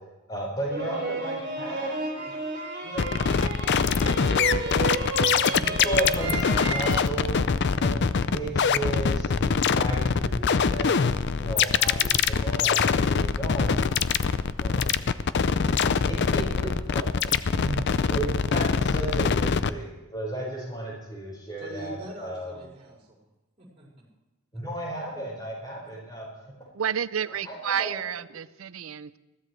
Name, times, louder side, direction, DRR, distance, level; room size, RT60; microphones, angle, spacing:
voice 1, 0.3-1.9 2.8-3.1 4.0-7.4 7.8-11.0 11.3-13.8 14.6-15.1 15.6-22.5 24.5-26.3 27.4-28.0, right 1 dB, 20° left, -3 dB, 5.1 m, -34 dB
sound 1, 0.7-7.0, right 3 dB, 45° right, 3.5 m, -32 dB
sound 2, 3.0-19.7, left 6 dB, 55° left, 0.5 m, -24 dB
voice 2, 21.6-23.2 23.6-24.0 24.5-24.6, right 1 dB, 30° right, -5 dB, 5.4 m, -43 dB
voice 3, 26.7-29.2, right 8 dB, 90° right, 16 dB, 0.5 m, -30 dB
21.0 x 15.0 x 3.2 m, 1.0 s
head